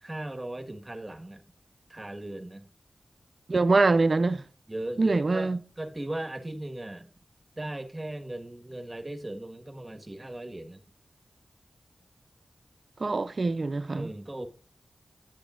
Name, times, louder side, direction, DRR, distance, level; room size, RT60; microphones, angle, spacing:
voice 1, 0.0-1.4 1.9-2.7 4.7-5.5 5.8-7.1 7.6-10.8 13.9-14.5, right 1 dB, 25° right, 1.5 m, -37 dB
voice 2, 3.5-4.4 5.0-5.6 13.0-14.1, right 3 dB, 55° right, 0.7 m, -24 dB
10.0 x 9.6 x 2.5 m
wide cardioid pair, 60°, 0 cm